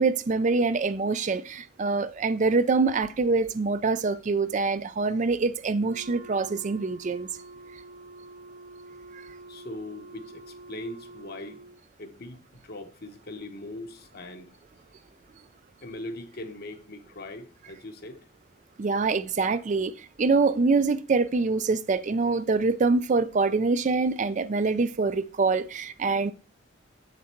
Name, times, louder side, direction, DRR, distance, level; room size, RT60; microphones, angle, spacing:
voice 1, 0.0-7.3 18.8-26.3, right 4 dB, 40° right, 0.4 m, -25 dB
Wind instrument woodwind instrument, 5.7-11.8, right 3 dB, 65° right, 1.1 m, -47 dB
voice 2, 9.5-11.6 12.0-14.5 15.8-18.3, left 1 dB, 55° left, 1.1 m, -40 dB
7.6 x 6.6 x 4.5 m
head